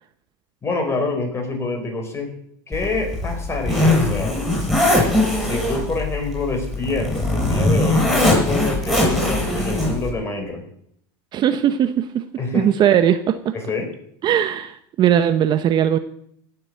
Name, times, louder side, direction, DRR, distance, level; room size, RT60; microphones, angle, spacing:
voice 1, 0.6-2.3 2.7-4.4 5.4-10.6 12.4-12.7 13.5-13.9, left 3 dB, 20° left, 4 dB, 4.9 m, -26 dB
Zipper (clothing), 2.7-10.1, left 1 dB, ahead, 7.2 m, -20 dB
voice 2, 11.3-12.2 12.5-13.5 14.2-16.0, right 10 dB, 35° right, 10 dB, 0.9 m, -19 dB
16.5 x 8.0 x 7.9 m, 0.69 s
supercardioid pair, 125°, 13 cm